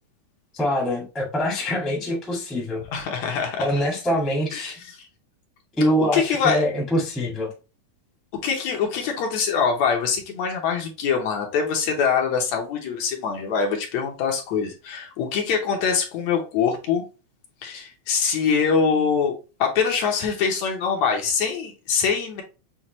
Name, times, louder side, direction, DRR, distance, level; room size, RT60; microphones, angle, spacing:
voice 1, 0.5-2.8 3.6-4.8 5.8-7.5, equal, ahead, 0.8 m, -24 dB
voice 2, 2.9-3.7 4.5-4.7 6.0-6.6 8.4-17.0 17.6-22.4, left 6 dB, 70° left, 2.0 m, -24 dB
7.3 x 2.4 x 2.9 m
omnidirectional pair, 3.4 m